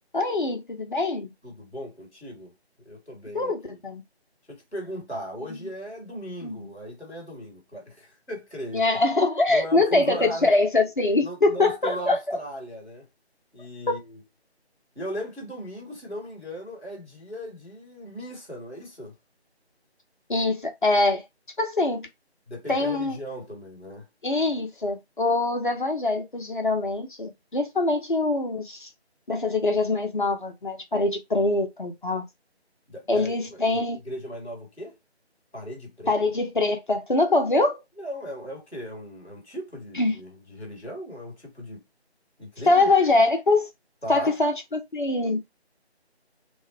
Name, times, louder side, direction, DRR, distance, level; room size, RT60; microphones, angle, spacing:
voice 1, 0.1-1.3 3.3-4.0 6.4-6.7 8.7-12.4 20.3-21.2 21.6-22.1 22.7-23.2 24.2-28.9 29.3-32.2 33.1-34.0 36.1-37.8 40.0-40.2 42.7-43.7 44.1-45.4, left 2 dB, 50° left, 0.9 m, -23 dB
voice 2, 1.4-2.5 2.8-3.5 4.5-8.8 9.5-10.5 11.2-13.1 13.5-14.2 14.9-19.1 22.5-24.1 32.9-33.8 34.0-35.0 35.5-36.2 38.0-41.8 42.4-43.3 44.0-44.4, equal, ahead, 1.0 m, -37 dB
3.1 x 2.4 x 4.3 m
figure-of-eight pair, 165°, 33 cm